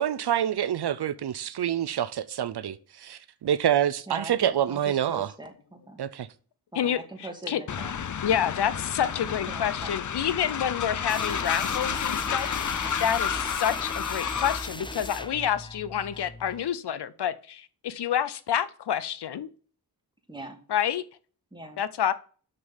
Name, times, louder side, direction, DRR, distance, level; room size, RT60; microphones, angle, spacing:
voice 1, 0.0-5.3 6.0-6.3, right 10 dB, 75° right, 0.6 m, -27 dB
voice 2, 4.1-6.0 6.7-8.0 9.0-9.9 12.8-13.2 20.3-20.6 21.5-21.8, right 1 dB, 10° right, 2.5 m, -42 dB
voice 3, 6.7-7.6 8.2-19.5 20.7-21.0 21.8-22.1, left 9 dB, 85° left, 0.7 m, -28 dB
Train, 7.7-14.7, left 8 dB, 50° left, 0.6 m, -31 dB
sound 1, 11.1-16.7, left 1 dB, 10° left, 0.7 m, -38 dB
6.8 x 6.6 x 7.2 m
cardioid pair, 65°, 39 cm